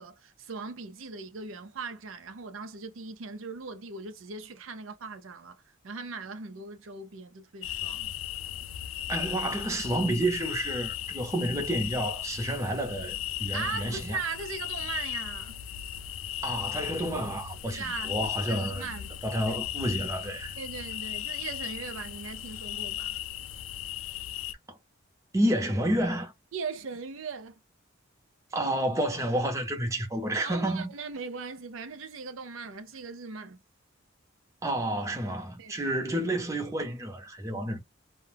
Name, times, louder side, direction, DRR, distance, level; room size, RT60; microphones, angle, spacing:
voice 1, 0.0-8.1 13.5-15.6 17.8-19.1 19.5-19.6 20.6-23.2 25.4-25.5 26.5-27.6 30.4-33.6 35.6-35.8, right 4 dB, 70° right, 0.5 m, -39 dB
sound 1, 7.6-24.5, left 12 dB, 75° left, 0.3 m, -36 dB
voice 2, 9.1-14.2 16.4-18.9 19.2-20.5 24.7-24.8 25.3-26.3 28.5-30.9 34.6-37.8, right 1 dB, 15° right, 0.7 m, -30 dB
2.2 x 2.1 x 3.3 m
head